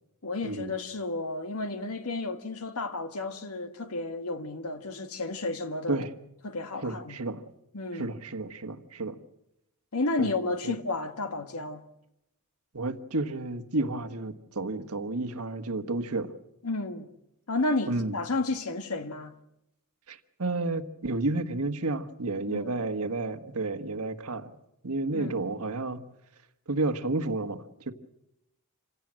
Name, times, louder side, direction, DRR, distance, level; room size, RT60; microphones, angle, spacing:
voice 1, 0.2-6.0 6.4-7.2 7.7-8.1 9.9-11.8 16.6-17.1 17.5-19.3 22.5-22.7 25.1-25.3, left 2 dB, 75° left, 1.5 m, -32 dB
voice 2, 6.8-7.4 7.9-9.2 10.2-10.3 10.6-10.7 12.7-16.3 17.9-18.2 20.1-24.5 24.8-26.0 26.7-27.9, right 2 dB, 75° right, 1.4 m, -31 dB
27.0 x 17.0 x 7.6 m
head